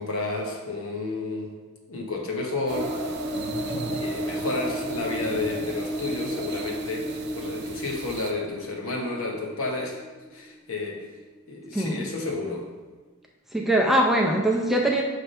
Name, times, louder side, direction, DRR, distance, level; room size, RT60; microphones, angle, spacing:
voice 1, 0.0-1.5 1.9-3.1 3.9-10.0 10.3-11.1 11.5-12.7, left 2 dB, 65° left, 0 dB, 1.1 m, -31 dB
sound 1, 2.7-11.2 11.5-11.6 11.9-12.0, equal, 20° left, 1.3 m, -33 dB
sound 2, 2.7-8.3, right 3 dB, 50° right, 0.5 m, -39 dB
voice 2, 11.7-12.1 13.5-15.0, right 1 dB, ahead, -1 dB, 0.5 m, -22 dB
5.8 x 3.4 x 5.4 m, 1.3 s
head